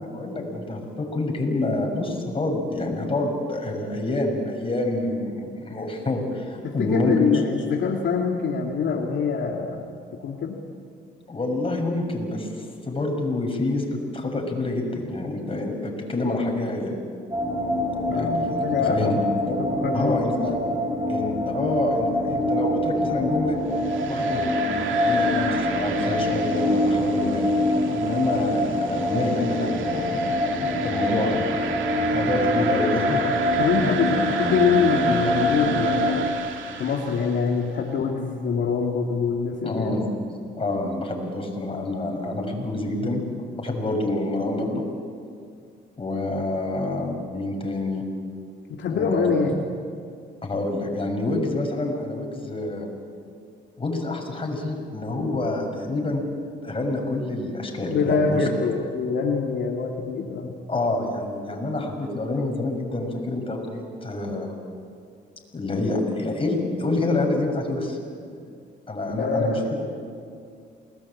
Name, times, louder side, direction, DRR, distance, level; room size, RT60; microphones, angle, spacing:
voice 1, 0.0-7.4 11.3-13.8 14.1-17.0 18.1-19.5 19.9-20.6 21.1-23.6 24.1-24.4 25.0-27.5 27.8-31.6 32.1-33.2 33.8-33.9 39.6-40.1 40.6-43.2 43.5-44.8 46.0-48.0 48.9-49.3 50.4-52.9 53.8-56.2 56.6-58.5 60.7-64.5 65.5-68.0 68.9-69.6, left 2 dB, 25° left, 1 dB, 6.7 m, -27 dB
voice 2, 6.6-9.8 10.2-10.6 18.1-19.2 19.8-20.2 33.6-36.5 36.7-39.9 48.7-49.6 57.9-60.5 69.1-69.7, left 5 dB, 65° left, 0 dB, 2.6 m, -24 dB
sound 1, 17.3-36.3, left 1 dB, 20° right, 6.1 m, -25 dB
sound 2, 23.7-37.7, right 7 dB, 75° right, 2.7 m, -34 dB
28.5 x 20.0 x 8.7 m, 2.3 s
cardioid pair, 90°, 20 cm